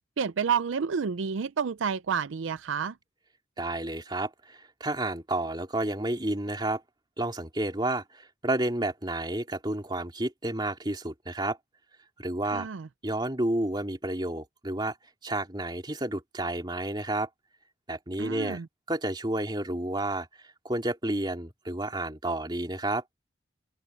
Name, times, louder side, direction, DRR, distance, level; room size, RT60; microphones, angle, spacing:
voice 1, 0.2-3.0 12.5-12.9 18.2-18.7, right 6 dB, 85° right, 0.5 m, -29 dB
voice 2, 3.6-6.8 7.2-11.6 12.2-12.7 13.0-14.9 15.2-17.3 17.9-18.6 18.9-20.3 20.6-23.0, right 1 dB, 25° right, 2.9 m, -30 dB
open air
head